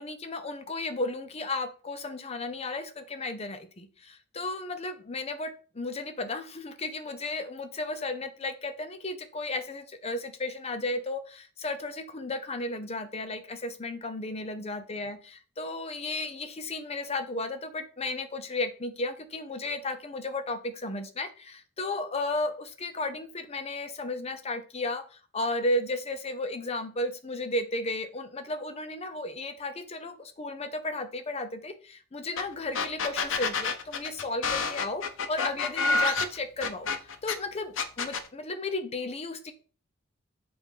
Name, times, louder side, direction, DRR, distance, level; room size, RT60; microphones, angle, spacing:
voice 1, 0.0-15.2 15.6-39.5, left 2 dB, 30° left, 9 dB, 0.6 m, -34 dB
sound 1, 32.4-32.5 32.7-37.3 37.8-38.3, left 4 dB, 80° left, 0.7 m, -28 dB
7.3 x 2.5 x 5.4 m, 0.38 s
head